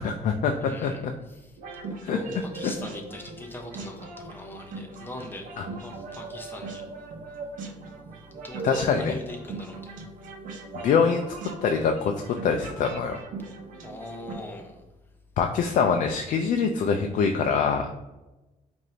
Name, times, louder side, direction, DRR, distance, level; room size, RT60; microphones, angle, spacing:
voice 1, 0.0-1.1 2.0-2.7 5.6-5.7 8.6-9.1 10.7-11.4 11.6-13.2 15.4-17.9, left 6 dB, 65° left, 4 dB, 0.4 m, -25 dB
voice 2, 0.6-5.5 5.8-6.9 8.3-10.0 13.8-14.9, left 1 dB, 15° left, 1 dB, 0.7 m, -41 dB
sound 1, 1.6-14.3, right 3 dB, 70° right, 0.8 m, -39 dB
4.8 x 2.6 x 2.8 m, 1.0 s
cardioid pair, 135°, 14 cm